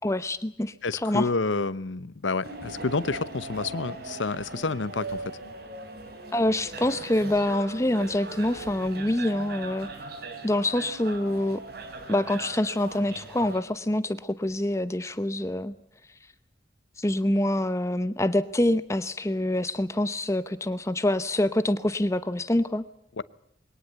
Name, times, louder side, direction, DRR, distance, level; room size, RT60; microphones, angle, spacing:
voice 1, 0.0-1.3 6.3-9.9 10.4-11.6 12.1-15.7 17.0-22.8, left 1 dB, 15° left, 13 dB, 0.8 m, -26 dB
voice 2, 0.8-5.2 23.2-23.3, left 3 dB, 85° left, 17 dB, 0.9 m, -29 dB
sound 1, 2.4-13.6, right 2 dB, 55° right, 3.6 m, -39 dB
22.5 x 18.5 x 8.1 m, 0.72 s
head